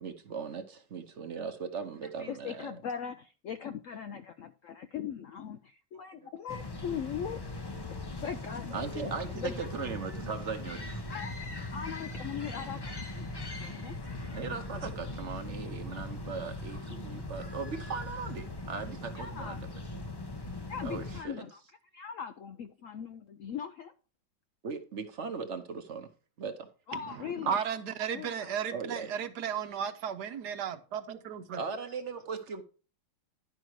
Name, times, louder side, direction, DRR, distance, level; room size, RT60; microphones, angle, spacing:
voice 1, 0.0-2.7 5.9-6.3 8.7-11.0 14.3-19.7 20.8-21.5 24.6-26.1 26.4-26.7 28.7-29.1 31.5-32.6, right 5 dB, 50° right, 1.0 m, -38 dB
voice 2, 2.2-9.5 11.1-13.3 13.6-13.9 19.1-19.6 20.7-21.6 21.9-23.9 26.9-27.6 28.1-28.5, left 8 dB, 70° left, 0.7 m, -40 dB
sound 1, 6.5-21.2, left 2 dB, 35° left, 0.3 m, -40 dB
voice 3, 26.9-31.6, right 8 dB, 70° right, 1.3 m, -35 dB
11.0 x 5.3 x 4.6 m
omnidirectional pair, 1.9 m